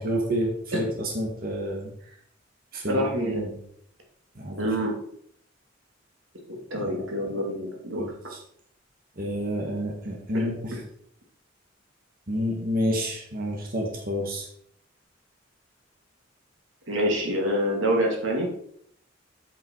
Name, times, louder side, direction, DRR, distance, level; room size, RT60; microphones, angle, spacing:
voice 1, 0.0-1.9 2.7-3.5 4.4-4.7 6.7-7.0 7.3-7.4 8.0-8.1 9.2-10.7 12.3-14.5, equal, 50° right, 0 dB, 1.8 m, -29 dB
voice 2, 2.9-3.5 4.6-5.0 6.5-8.1 10.3-10.8 16.9-18.5, equal, 90° right, 0 dB, 2.5 m, -27 dB
8.3 x 7.3 x 4.7 m, 0.65 s
head